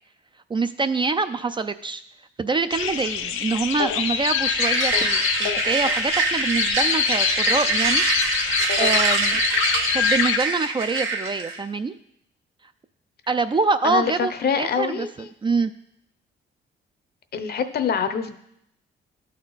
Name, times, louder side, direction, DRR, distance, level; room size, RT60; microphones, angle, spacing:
voice 1, 0.5-2.0 2.4-8.0 8.4-8.5 8.8-9.4 9.9-11.9 13.3-15.1 15.4-15.7, right 4 dB, 25° right, 10 dB, 0.4 m, -25 dB
sound 1, 2.7-10.4, left 8 dB, 85° left, 0.6 m, -25 dB
sound 2, 4.4-11.6, right 4 dB, 85° right, 1.2 m, -25 dB
voice 2, 14.4-15.3 17.3-18.4, left 6 dB, 50° left, 9 dB, 0.7 m, -25 dB
12.0 x 4.3 x 4.0 m, 0.74 s
cardioid pair, 90°, 20 cm